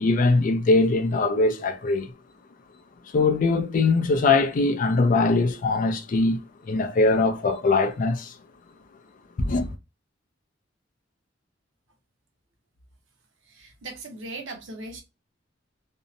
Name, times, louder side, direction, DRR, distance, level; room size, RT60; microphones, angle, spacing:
voice 1, 0.0-2.1 3.1-6.4 6.7-8.3 9.4-9.7, left 3 dB, 45° left, 0.4 m, -21 dB
voice 2, 13.4-15.0, right 2 dB, 85° right, 0.7 m, -38 dB
2.7 x 2.0 x 2.5 m
head